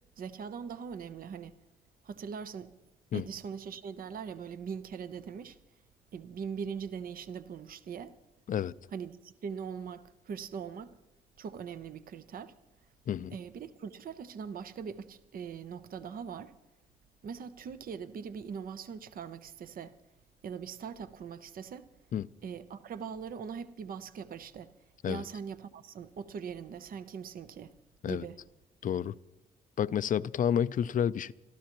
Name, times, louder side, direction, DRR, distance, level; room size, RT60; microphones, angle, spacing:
voice 1, 0.2-1.6 2.0-2.7 3.1-5.6 6.1-8.1 8.9-10.9 11.4-12.5 13.3-16.5 17.2-20.0 20.4-21.9 22.4-24.7 25.0-27.7 28.1-28.4, right 6 dB, 60° right, 0.8 m, -41 dB
voice 2, 28.8-29.1 29.8-31.3, left 9 dB, 50° left, 0.5 m, -30 dB
29.0 x 13.0 x 3.0 m
supercardioid pair, 65°, 17 cm